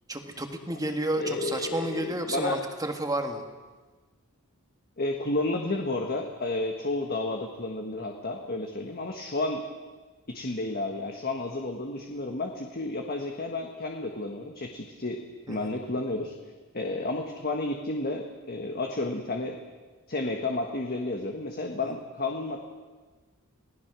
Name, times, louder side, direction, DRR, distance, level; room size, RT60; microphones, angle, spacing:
voice 1, 0.1-3.4 15.5-15.7, right 1 dB, 15° right, 5 dB, 1.7 m, -31 dB
voice 2, 1.1-2.6 5.0-9.6 10.3-16.3 16.7-19.6 20.1-22.6, left 2 dB, 45° left, 2 dB, 1.5 m, -31 dB
27.0 x 17.5 x 6.2 m, 1.3 s
head